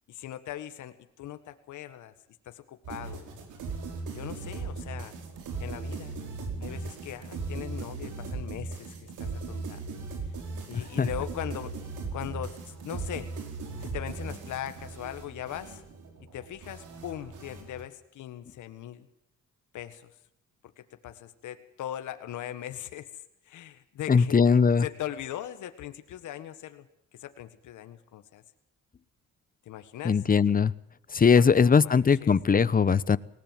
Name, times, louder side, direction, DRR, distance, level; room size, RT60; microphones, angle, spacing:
voice 1, 0.1-2.1 2.4-3.2 4.1-5.2 5.6-6.2 6.6-9.8 10.7-11.7 12.1-12.6 12.8-13.3 13.8-15.8 16.3-19.1 19.7-20.1 20.8-23.1 23.4-24.4 24.8-26.9 27.2-28.4 29.6-30.2 31.3-32.3, left 12 dB, 80° left, 9 dB, 1.7 m, -40 dB
sound 1, 2.8-17.8, right 4 dB, 80° right, 4.8 m, -38 dB
voice 2, 24.1-24.8 30.0-30.7 31.1-33.2, left 6 dB, 30° left, 19 dB, 0.9 m, -20 dB
19.5 x 18.0 x 7.6 m, 0.78 s
cardioid pair, 90°, 30 cm